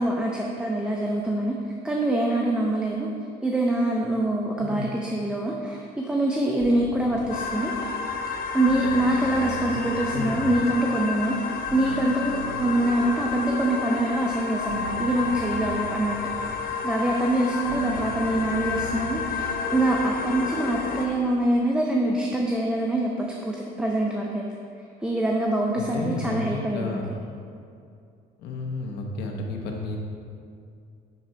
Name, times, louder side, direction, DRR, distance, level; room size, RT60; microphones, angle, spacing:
voice 1, 0.0-1.6 1.8-3.1 3.4-7.7 8.5-11.4 11.7-24.5 25.0-27.0, right 1 dB, 5° right, -1 dB, 0.5 m, -25 dB
voice 2, 4.6-4.9 10.1-10.4 25.7-27.0 28.4-30.0, left 3 dB, 85° left, 1 dB, 0.9 m, -32 dB
sound 1, 6.6-7.6 8.6-13.9 14.6-16.7 17.6-19.7, right 1 dB, 75° right, 1.0 m, -40 dB
sound 2, 7.3-21.1, left 5 dB, 60° left, 0.6 m, -31 dB
6.8 x 3.8 x 4.4 m, 2.4 s
cardioid pair, 110°, 17 cm